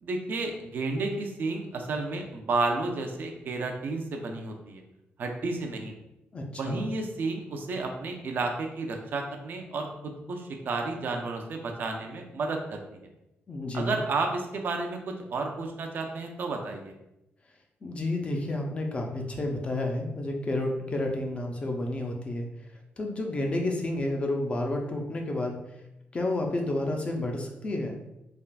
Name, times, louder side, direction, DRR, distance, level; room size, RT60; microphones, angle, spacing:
voice 1, 0.0-4.8 5.2-5.9 6.6-13.1 13.7-16.9, right 3 dB, 55° right, 3 dB, 0.4 m, -32 dB
voice 2, 6.3-6.9 13.5-14.0 17.8-22.5 23.0-25.6 26.1-28.0, left 1 dB, 30° left, 2 dB, 0.4 m, -30 dB
3.3 x 2.4 x 2.3 m, 0.89 s
wide cardioid pair, 140°, 4 cm